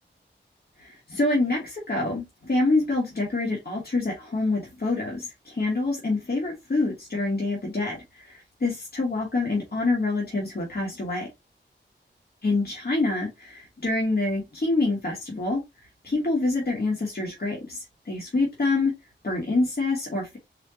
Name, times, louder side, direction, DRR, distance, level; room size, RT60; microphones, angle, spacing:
voice 1, 0.8-11.3 12.4-15.6 16.0-18.9 19.2-20.4, left 2 dB, 55° left, 2.0 m, -26 dB
4.9 x 2.7 x 2.9 m
wide cardioid pair, 65°, 20 cm